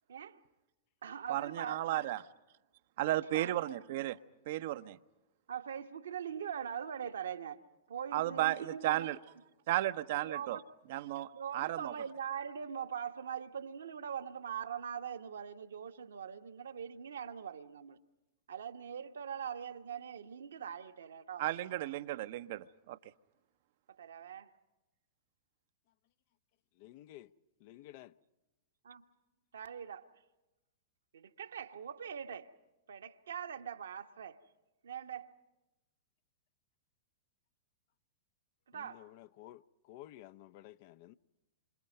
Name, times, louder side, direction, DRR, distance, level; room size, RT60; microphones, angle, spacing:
voice 1, 0.1-0.4 1.0-2.1 3.3-3.8 5.5-7.6 7.9-9.1 10.2-10.6 11.3-18.0 18.5-21.5 23.9-24.5 28.8-29.0 29.5-30.1 31.1-32.5 32.9-34.4 34.8-35.3 38.7-39.0, right 8 dB, 70° right, 1.3 m, -42 dB
voice 2, 1.3-2.2 3.0-4.2 4.5-5.0 8.1-9.2 9.7-10.6 10.9-11.9 21.4-23.0, right 15 dB, 55° right, 0.8 m, -34 dB
voice 3, 26.8-27.3 27.6-28.1 38.7-41.2, left 14 dB, 50° left, 0.7 m, -53 dB
27.5 x 26.5 x 5.5 m
figure-of-eight pair, 100°, 0 cm